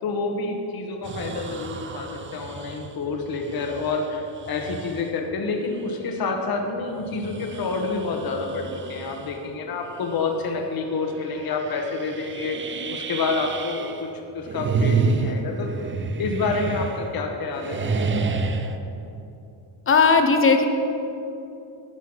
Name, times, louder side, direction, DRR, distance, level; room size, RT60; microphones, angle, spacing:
voice 1, 0.0-12.6 12.9-15.7 16.2-18.5, left 3 dB, 50° left, 3 dB, 1.2 m, -28 dB
sound 1, 1.0-5.2 5.8-5.9 6.9-9.5 9.9-10.3 10.6-10.7 11.2-14.1 14.4-17.3 17.5-18.8, right 4 dB, 25° right, 0.5 m, -30 dB
voice 2, 19.9-20.7, left 4 dB, 25° left, 6 dB, 0.8 m, -17 dB
11.0 x 5.6 x 7.6 m, 2.8 s
cardioid pair, 130°, 48 cm